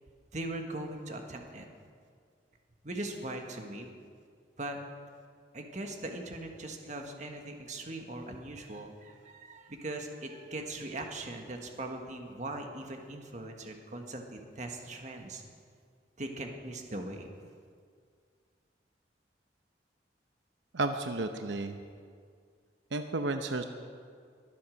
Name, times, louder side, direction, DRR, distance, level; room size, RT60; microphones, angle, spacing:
voice 1, 0.3-1.7 2.8-3.9 4.6-4.8 5.5-15.4 16.2-17.3, right 2 dB, 40° right, 3 dB, 1.5 m, -40 dB
voice 2, 20.7-21.8 22.9-23.6, right 2 dB, 85° right, 7 dB, 0.8 m, -32 dB
23.0 x 8.5 x 6.4 m, 2.1 s
head